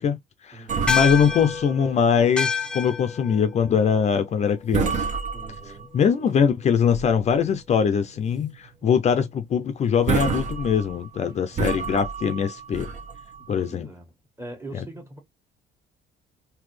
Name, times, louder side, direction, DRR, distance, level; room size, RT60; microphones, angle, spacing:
voice 1, 0.0-5.1 5.9-12.9 13.5-13.9 14.7-14.8, left 7 dB, 40° left, 0.5 m, -22 dB
voice 2, 0.5-1.0 5.3-6.0 13.6-14.1 14.4-15.2, right 2 dB, 15° right, 1.6 m, -41 dB
sound 1, 0.7-2.5 2.8-3.0 3.5-3.7 4.3-4.5 4.7-6.1 6.5-7.4 7.8-7.9 8.4-8.6 8.8-8.9 9.6-9.7 9.9-13.6, right 5 dB, 45° right, 1.1 m, -30 dB
sound 2, 0.9-5.5, left 5 dB, 5° left, 0.7 m, -30 dB
3.9 x 2.7 x 3.2 m
cardioid pair, 110°, 17 cm